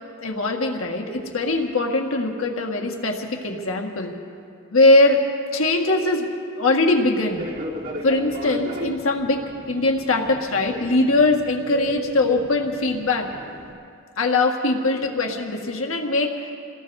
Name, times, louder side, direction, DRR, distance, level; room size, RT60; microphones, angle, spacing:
voice 1, 0.2-4.1 4.7-5.2 5.5-6.3 6.6-7.4 8.0-9.4 9.7-13.3 14.2-16.3, left 2 dB, 70° left, 2 dB, 1.7 m, -21 dB
Fixed-wing aircraft airplane, 7.3-13.7, right 1 dB, 65° right, 3.4 m, -35 dB
28.5 x 18.5 x 2.7 m, 2.5 s
head